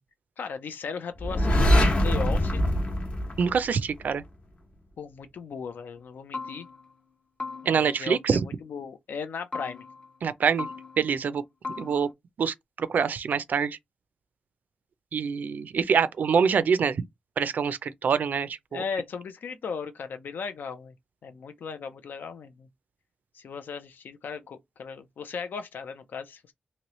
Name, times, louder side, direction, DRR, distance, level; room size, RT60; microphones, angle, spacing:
voice 1, 0.4-2.6 5.0-6.7 7.6-9.8 18.7-20.9 21.2-22.7 23.3-26.5, left 5 dB, 85° left, 0.5 m, -37 dB
sound 1, 1.2-4.1, equal, 45° left, 0.9 m, -23 dB
voice 2, 3.4-4.2 7.7-8.4 10.2-10.7 11.0-11.4 11.8-12.1 12.4-13.8 15.1-17.0 17.4-18.8, right 6 dB, 65° right, 0.3 m, -25 dB
sound 2, 6.0-6.1 6.3-7.0 7.4-8.1 9.5-10.2 10.6-11.3 11.6-12.1, left 4 dB, 25° left, 0.5 m, -39 dB
3.0 x 2.7 x 2.9 m
wide cardioid pair, 175°, 3 cm